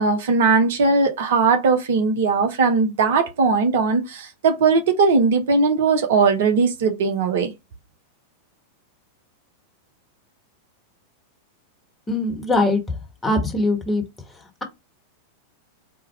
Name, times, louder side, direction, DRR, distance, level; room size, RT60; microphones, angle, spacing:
voice 1, 0.0-7.5, right 4 dB, 55° right, 0.7 m, -19 dB
voice 2, 12.1-12.8 13.2-14.0, left 2 dB, 15° left, 1.2 m, -21 dB
4.6 x 2.3 x 3.1 m
figure-of-eight pair, 90°, 0 cm